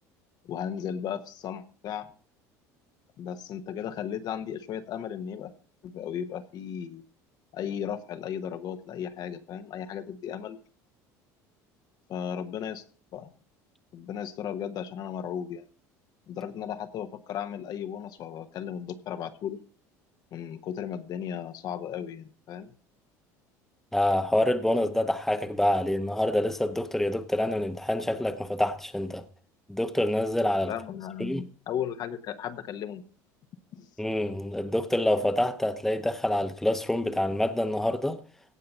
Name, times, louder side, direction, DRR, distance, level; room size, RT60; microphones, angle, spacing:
voice 1, 0.4-2.1 3.2-5.5 5.8-7.0 7.5-10.6 12.1-12.8 13.1-13.3 13.9-15.6 16.3-19.6 20.3-22.7 30.6-33.0 33.7-33.9, left 9 dB, 55° left, 1.2 m, -35 dB
voice 2, 23.9-29.2 29.7-30.7 31.2-31.4 34.0-38.2, left 1 dB, 5° left, 1.0 m, -26 dB
17.0 x 5.7 x 5.5 m
supercardioid pair, 95°, 8 cm